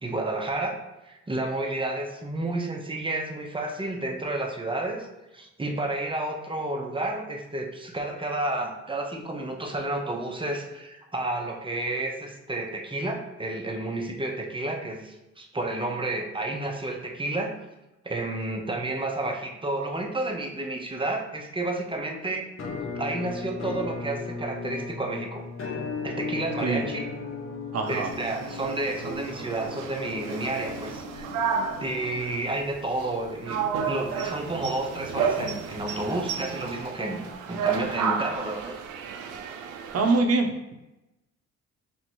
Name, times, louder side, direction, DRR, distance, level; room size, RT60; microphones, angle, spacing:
voice 1, 0.0-5.1 5.3-17.6 18.0-22.4 23.0-25.4 26.0-27.1 27.9-31.2 31.8-38.7, right 2 dB, 15° right, 2 dB, 0.8 m, -31 dB
Musical instrument, 22.6-32.4, left 4 dB, 45° left, 1.0 m, -36 dB
voice 2, 27.7-28.1 39.9-40.7, right 3 dB, 55° right, 5 dB, 0.8 m, -24 dB
sound 1, 27.9-40.2, right 6 dB, 85° right, 0.6 m, -32 dB
3.7 x 2.9 x 4.4 m, 0.98 s
cardioid pair, 90°, 30 cm